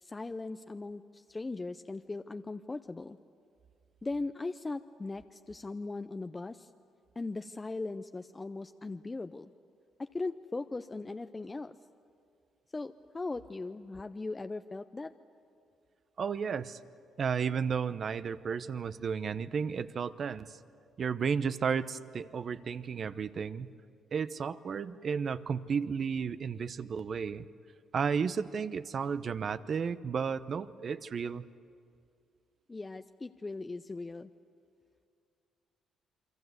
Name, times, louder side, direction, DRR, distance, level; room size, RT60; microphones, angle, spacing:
voice 1, 0.0-3.2 4.0-6.7 7.2-9.5 10.0-11.8 12.7-15.1 32.7-34.3, left 3 dB, 20° left, 9 dB, 0.6 m, -39 dB
voice 2, 16.2-16.8 17.2-20.6 21.0-23.7 24.1-27.5 27.9-31.5, right 6 dB, 50° right, 13 dB, 0.8 m, -33 dB
28.0 x 24.0 x 8.1 m, 2.4 s
cardioid pair, 90°, 0 cm